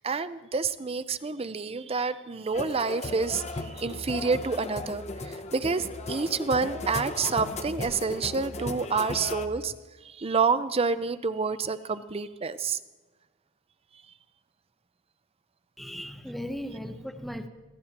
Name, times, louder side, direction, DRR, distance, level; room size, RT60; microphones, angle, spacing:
voice 1, 0.0-9.7 10.0-12.8, right 4 dB, 30° right, 13 dB, 0.5 m, -28 dB
sound 1, 2.5-9.5, left 2 dB, 30° left, 0.8 m, -36 dB
voice 2, 15.8-17.5, equal, ahead, 7 dB, 0.8 m, -37 dB
27.0 x 16.0 x 2.9 m, 1.3 s
head